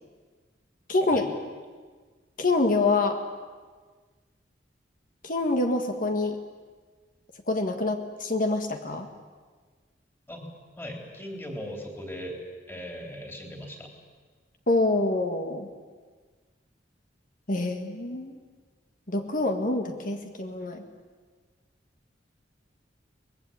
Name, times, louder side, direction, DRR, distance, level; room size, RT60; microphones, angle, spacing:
voice 1, 0.9-1.3 2.4-3.2 5.2-6.4 7.5-9.1 14.7-15.7 17.5-18.4 19.1-20.8, left 2 dB, 50° left, 6 dB, 1.8 m, -26 dB
voice 2, 10.8-12.4 12.7-13.9, equal, 15° left, 2 dB, 3.7 m, -38 dB
23.5 x 20.5 x 8.8 m, 1.4 s
head